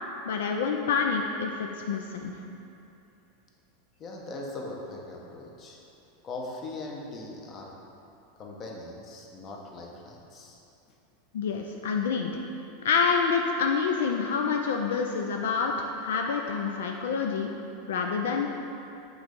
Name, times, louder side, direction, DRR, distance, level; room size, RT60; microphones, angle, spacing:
voice 1, 0.2-2.3 11.3-12.3 12.8-17.5 17.9-18.5, left 5 dB, 80° left, 2 dB, 0.4 m, -27 dB
voice 2, 4.0-5.8 6.2-7.7 8.4-10.6, left 2 dB, 35° left, -1 dB, 0.9 m, -40 dB
5.9 x 3.2 x 5.2 m, 2.7 s
hypercardioid pair, 110°, 0 cm